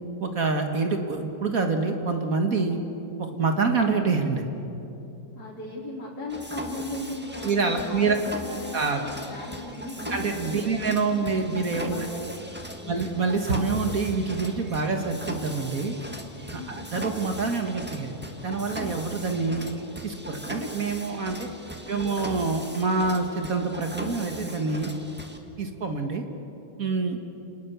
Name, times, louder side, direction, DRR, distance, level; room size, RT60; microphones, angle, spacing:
voice 1, 0.2-2.8 3.2-4.5 7.4-8.2 8.7-9.0 10.1-12.1 12.9-16.0 16.5-18.2 18.4-19.6 20.0-21.5 21.9-24.9 25.6-26.2 26.8-27.2, right 4 dB, 50° right, 4 dB, 2.0 m, -26 dB
voice 2, 5.3-11.2 11.9-12.3 12.7-13.1 16.5-16.9 21.8-22.3, left 2 dB, 55° left, -6 dB, 3.8 m, -38 dB
Mechanisms, 6.3-25.4, equal, 5° right, 1.5 m, -39 dB
29.0 x 19.5 x 7.0 m, 2.8 s
omnidirectional pair, 2.1 m